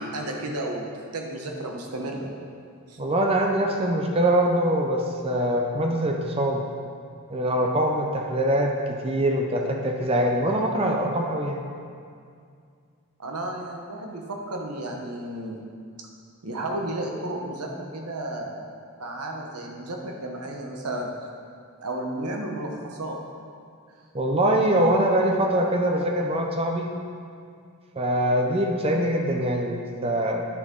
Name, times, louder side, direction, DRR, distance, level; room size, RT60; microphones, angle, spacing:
voice 1, 0.0-2.3 2.9-3.0 13.2-15.6 16.0-16.1 16.4-18.7 19.0-21.1 21.8-23.2, right 1 dB, 85° right, 1 dB, 1.1 m, -33 dB
voice 2, 3.0-6.6 7.3-11.6 24.1-26.9 28.0-30.5, right 1 dB, 25° right, 1 dB, 0.5 m, -23 dB
9.8 x 6.6 x 3.8 m, 2.3 s
head